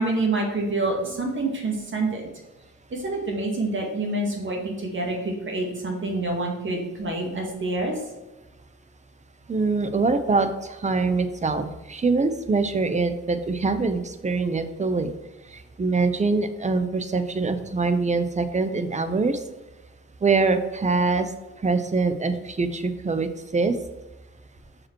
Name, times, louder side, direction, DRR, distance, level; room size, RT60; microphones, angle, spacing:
voice 1, 0.0-2.2 2.9-8.0, right 2 dB, 40° right, 1 dB, 1.8 m, -27 dB
voice 2, 9.5-15.1 15.5-19.4 20.2-21.3 21.6-23.8, right 3 dB, 25° right, 10 dB, 0.7 m, -24 dB
5.9 x 5.1 x 4.5 m, 1.1 s
cardioid pair, 90°, 30 cm